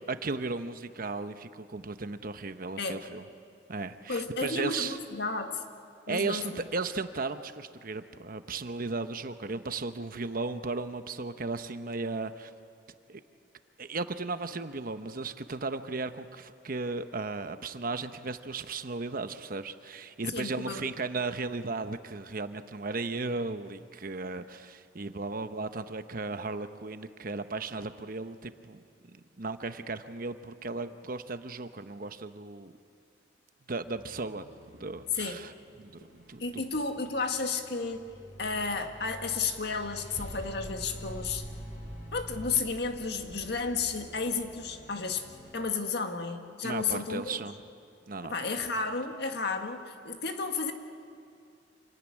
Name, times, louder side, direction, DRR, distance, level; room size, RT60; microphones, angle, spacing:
voice 1, 0.1-3.2 3.7-5.0 6.1-12.5 13.1-13.2 13.8-28.8 29.4-32.7 33.7-34.5 34.8-35.5 35.8-35.9 36.3-36.6 46.6-47.5 48.1-48.3, right 3 dB, 50° right, 10 dB, 0.9 m, -35 dB
voice 2, 4.1-5.6 6.1-6.6 20.3-20.8 35.1-35.4 36.4-38.1 38.4-41.4 42.1-45.3 45.5-47.4 48.2-50.7, left 4 dB, 65° left, 5 dB, 1.8 m, -32 dB
sound 1, 33.8-45.5, equal, 40° left, 7.0 m, -46 dB
26.5 x 17.0 x 10.0 m, 2.5 s
head